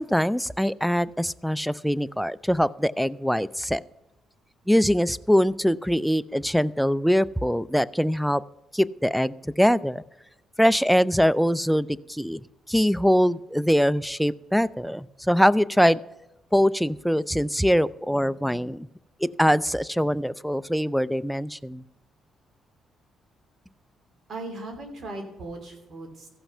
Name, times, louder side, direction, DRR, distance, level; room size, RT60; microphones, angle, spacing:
voice 1, 0.0-3.8 4.7-8.4 8.7-10.0 10.6-12.4 12.7-16.0 16.5-18.9 19.2-21.8, equal, ahead, 16 dB, 0.4 m, -23 dB
voice 2, 24.3-26.3, right 2 dB, 55° right, 4 dB, 2.9 m, -38 dB
15.0 x 5.8 x 5.5 m, 0.99 s
cardioid pair, 90°, 0 cm